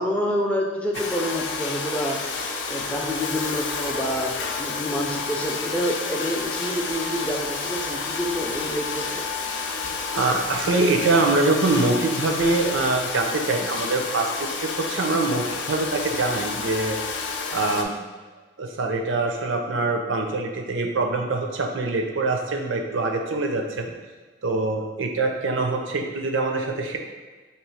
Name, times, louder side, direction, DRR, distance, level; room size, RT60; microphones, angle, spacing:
voice 1, 0.0-2.2 2.7-4.3 4.6-9.2, equal, 5° left, 0 dB, 0.4 m, -28 dB
Domestic sounds home sounds, 0.9-17.8, left 4 dB, 70° left, 0.5 m, -30 dB
voice 2, 10.1-17.0 17.5-17.9 18.6-23.9 24.4-27.0, right 3 dB, 80° right, 3 dB, 0.6 m, -24 dB
3.1 x 3.0 x 4.7 m, 1.3 s
head